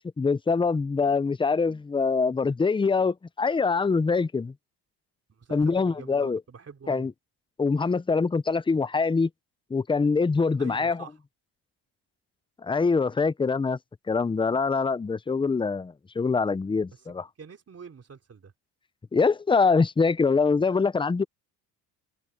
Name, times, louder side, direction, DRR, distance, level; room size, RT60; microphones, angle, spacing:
voice 1, 0.2-4.5 5.5-6.4 6.9-7.1 7.6-9.3 9.7-11.0 12.6-13.8 14.1-17.3 19.1-21.2, left 4 dB, 10° left, 0.5 m, -24 dB
voice 2, 5.3-7.1 10.6-11.2 17.0-18.5, right 6 dB, 35° right, 3.4 m, -46 dB
open air
cardioid pair, 95°, 43 cm